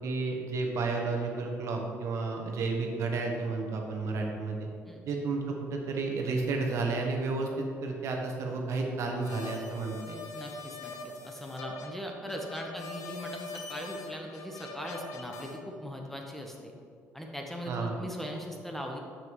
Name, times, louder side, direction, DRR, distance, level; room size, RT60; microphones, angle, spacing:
voice 1, 0.0-4.7 5.1-10.2 17.7-17.9, right 3 dB, 65° right, 1 dB, 1.0 m, -32 dB
sound 1, 9.2-15.6, left 3 dB, 80° left, 0.9 m, -43 dB
voice 2, 10.3-16.7 17.1-19.0, equal, 5° left, 1 dB, 1.0 m, -40 dB
7.3 x 5.9 x 3.1 m, 2.3 s
supercardioid pair, 80°, 5 cm